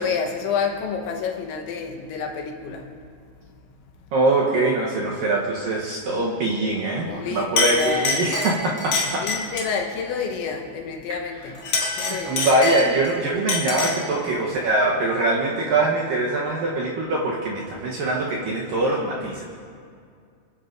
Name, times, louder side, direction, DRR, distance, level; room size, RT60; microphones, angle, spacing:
voice 1, 0.0-2.9 7.2-8.4 9.2-11.6 12.0-12.5, left 6 dB, 85° left, 2 dB, 3.5 m, -28 dB
voice 2, 4.1-9.3 12.0-19.5, right 2 dB, 75° right, -3 dB, 2.1 m, -23 dB
Chink clink, 7.1-7.2 7.6-9.8 11.5-13.1 13.5-14.1, left 3 dB, 60° left, 1.4 m, -25 dB
29.5 x 10.0 x 2.6 m, 2.2 s
omnidirectional pair, 5.2 m